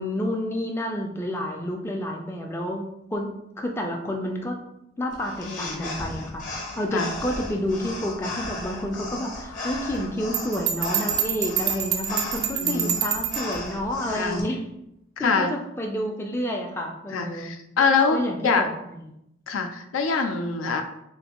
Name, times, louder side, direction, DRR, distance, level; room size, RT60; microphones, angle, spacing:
voice 1, 0.0-2.8 3.1-3.3 3.6-4.6 5.0-14.6 15.2-17.5 18.1-19.0, left 1 dB, 10° left, 1 dB, 0.3 m, -29 dB
sound 1, 5.1-14.4, left 2 dB, 40° left, 0.7 m, -36 dB
voice 2, 5.4-5.9 6.9-7.1 12.5-13.0 14.1-14.5 15.2-15.5 17.1-18.6 19.5-20.8, left 4 dB, 90° left, 6 dB, 0.4 m, -24 dB
Bell, 10.3-13.5, right 9 dB, 85° right, 0.4 m, -27 dB
3.1 x 2.5 x 2.9 m, 0.80 s
head